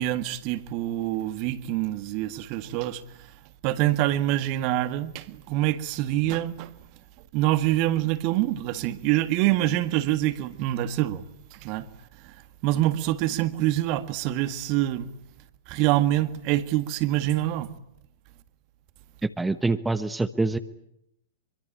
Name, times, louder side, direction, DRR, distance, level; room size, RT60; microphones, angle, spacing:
voice 1, 0.0-3.3 3.6-6.7 7.3-11.9 12.2-12.4 12.6-15.1 15.7-17.7, right 14 dB, 40° right, 1.7 m, -25 dB
voice 2, 19.2-20.6, right 2 dB, 5° right, 1.1 m, -25 dB
25.5 x 24.0 x 8.7 m
figure-of-eight pair, 100°, 0 cm